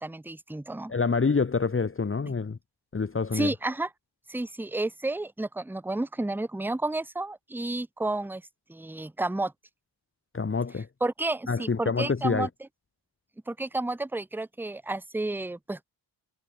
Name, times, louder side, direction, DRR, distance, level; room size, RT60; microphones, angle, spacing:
voice 1, 0.0-0.9 3.3-3.9 4.3-8.4 8.7-9.5 11.0-12.5 13.5-15.8, right 2 dB, 5° right, 0.8 m, -31 dB
voice 2, 0.9-2.6 2.9-3.5 10.3-10.9 11.5-12.5, left 4 dB, 25° left, 1.2 m, -27 dB
cardioid pair, 80°, 47 cm